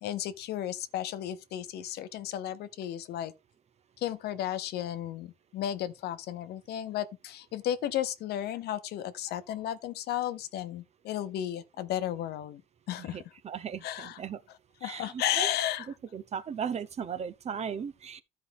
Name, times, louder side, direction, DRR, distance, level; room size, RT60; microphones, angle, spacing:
voice 1, 0.0-3.3 4.0-12.6 12.9-13.2 13.8-14.2 14.8-15.9, left 11 dB, 75° left, 0.9 m, -34 dB
voice 2, 13.0-14.4 14.8-15.5 16.1-18.2, right 7 dB, 40° right, 0.9 m, -37 dB
13.0 x 4.7 x 3.6 m
cardioid pair, 110°, 17 cm